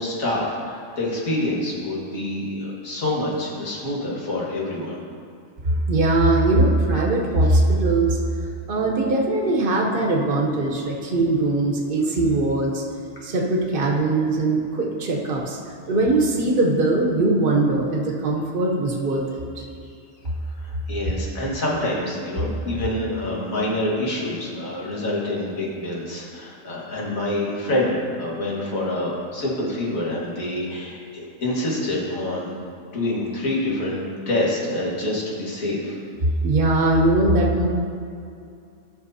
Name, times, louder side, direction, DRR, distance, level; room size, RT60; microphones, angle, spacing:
voice 1, 0.0-5.0 19.8-19.9 20.4-32.5 32.9-34.0 34.3-36.0, left 1 dB, 85° left, -5 dB, 2.1 m, -26 dB
voice 2, 5.6-8.2 8.7-12.8 13.2-15.6 15.9-19.6 36.4-37.7, right 2 dB, 45° right, -1 dB, 1.2 m, -21 dB
13.5 x 6.2 x 2.8 m, 2.5 s
omnidirectional pair, 1.4 m